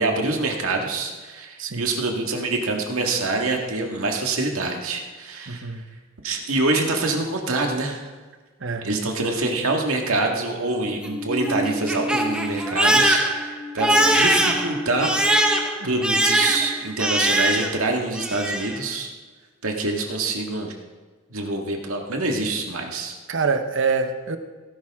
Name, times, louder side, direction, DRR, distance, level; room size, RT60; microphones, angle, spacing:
voice 1, 0.0-5.8 6.2-8.1 8.8-15.2 15.8-19.1 19.6-20.7 21.3-23.2, right 2 dB, 75° right, 2 dB, 2.0 m, -25 dB
voice 2, 5.5-5.8 8.6-8.9 15.8-16.0 23.3-24.4, right 4 dB, 60° right, 8 dB, 1.0 m, -25 dB
Crying sobbing, 10.9-17.9 18.1-18.8, right 1 dB, 5° right, 1.0 m, -22 dB
17.5 x 11.0 x 3.7 m, 1.4 s
head